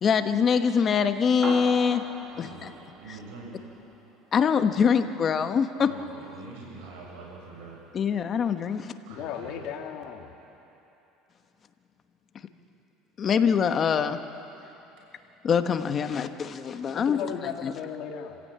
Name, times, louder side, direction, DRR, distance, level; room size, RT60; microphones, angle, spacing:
voice 1, 0.0-2.0 2.4-2.7 4.3-5.9 7.9-8.9 13.2-14.2 15.4-17.2 17.6-17.7, left 6 dB, 30° left, 8 dB, 1.2 m, -24 dB
sound 1, 1.4-4.1, right 5 dB, 35° right, 1.7 m, -40 dB
voice 2, 2.3-3.6 5.8-7.8 9.1-9.7 16.4-16.5, right 3 dB, 80° right, -2 dB, 7.4 m, -44 dB
voice 3, 8.8-10.3 16.9-18.4, left 8 dB, 60° left, 2 dB, 2.3 m, -36 dB
27.0 x 16.0 x 8.8 m, 3.0 s
cardioid pair, 135°, 0 cm